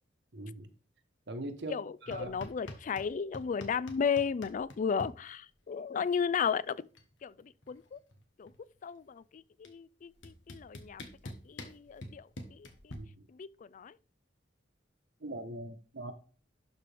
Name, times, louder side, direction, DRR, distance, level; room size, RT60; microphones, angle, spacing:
voice 1, 0.3-0.7 1.3-2.3 12.9-13.3 15.2-16.1, right 1 dB, 65° right, 1.1 m, -41 dB
voice 2, 1.7-6.9 7.2-8.0 8.4-8.5 8.8-13.0 13.3-14.0, left 6 dB, 45° left, 0.3 m, -35 dB
sound 1, 2.1-3.1 3.3-5.1 6.4-6.5 6.7-7.1 7.4-8.8 9.6-9.7 10.2-12.9, left 1 dB, 80° left, 1.4 m, -46 dB
11.5 x 4.8 x 3.4 m
head